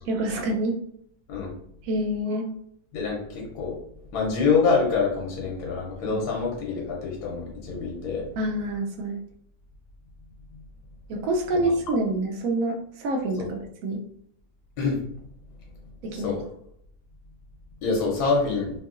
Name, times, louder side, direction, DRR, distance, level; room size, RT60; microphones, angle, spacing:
voice 1, 0.0-0.8 1.8-2.5 6.0-6.2 8.4-9.2 11.1-14.0 16.0-16.4, right 1 dB, 70° right, 2 dB, 0.9 m, -27 dB
voice 2, 2.9-3.8 4.1-8.2 11.6-11.7 13.4-13.5 14.8-15.0 16.1-16.4 17.8-18.7, left 4 dB, 75° left, -2 dB, 1.2 m, -26 dB
2.9 x 2.7 x 2.4 m, 0.70 s
omnidirectional pair, 1.7 m